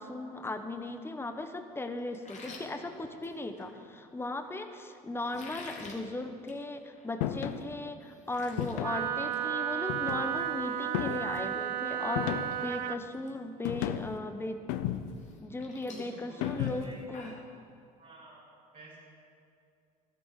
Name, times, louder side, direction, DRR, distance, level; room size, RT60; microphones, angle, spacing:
voice 1, 0.0-12.3 12.6-14.6 15.4-17.4, left 2 dB, 10° left, 7 dB, 1.0 m, -37 dB
sound 1, 2.1-3.7 5.2-6.0 6.4-6.6 7.0-7.1 7.6-7.7 7.9-8.7 9.1-9.4 9.7-9.9 11.7-11.8 12.3-12.6 12.8-13.3 13.7-13.8 15.2-17.5, left 3 dB, 35° left, 2.6 m, -49 dB
sound 2, 7.2-7.6 8.6-9.1 9.9-10.5 10.9-11.4 12.2-12.7 13.6-14.2 14.7-15.3 16.4-17.0, left 11 dB, 80° left, 0.6 m, -34 dB
Wind instrument woodwind instrument, 8.8-13.0, right 10 dB, 90° right, 0.5 m, -33 dB
voice 2, 13.3-13.7 15.9-17.3 18.0-19.0, right 2 dB, 40° right, -6 dB, 2.7 m, -51 dB
12.5 x 11.5 x 4.9 m, 2.5 s
hypercardioid pair, 70°, 20 cm